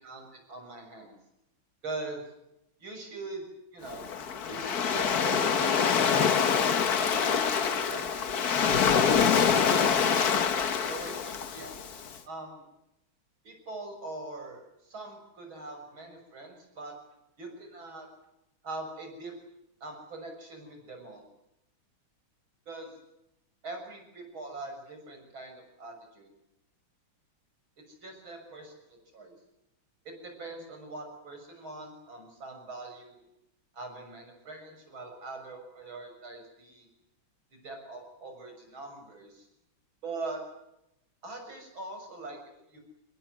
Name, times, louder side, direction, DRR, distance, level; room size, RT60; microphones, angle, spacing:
voice 1, 0.1-1.2 1.8-2.2 2.8-3.4 3.7-4.1 4.4-6.0 7.1-10.4 10.9-11.9 12.3-12.6 13.4-17.0 17.4-18.1 18.6-19.3 19.8-21.3 22.7-22.9 23.6-26.3 27.9-28.7 29.1-29.3 30.2-33.2 33.7-36.9 37.5-39.5 40.0-40.4 41.2-42.8, right 2 dB, 70° right, 4 dB, 7.4 m, -42 dB
Waves surf, 3.9-12.1, left 7 dB, 50° left, 1.7 m, -25 dB
25.5 x 20.5 x 9.5 m, 0.85 s
omnidirectional pair, 2.2 m